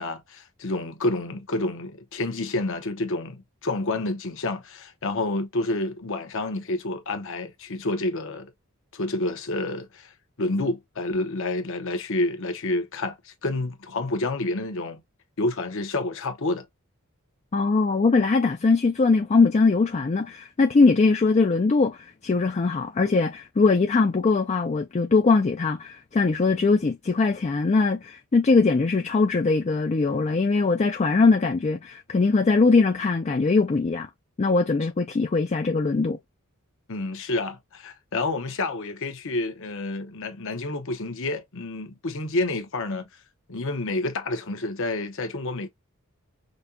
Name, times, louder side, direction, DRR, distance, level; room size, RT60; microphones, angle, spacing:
voice 1, 0.0-8.5 8.9-10.1 10.4-15.0 15.4-16.6 36.9-43.1 43.5-45.7, left 2 dB, 60° left, 1.0 m, -29 dB
voice 2, 17.5-34.1 34.4-36.2, left 4 dB, 30° left, 0.4 m, -21 dB
5.2 x 2.3 x 2.7 m
head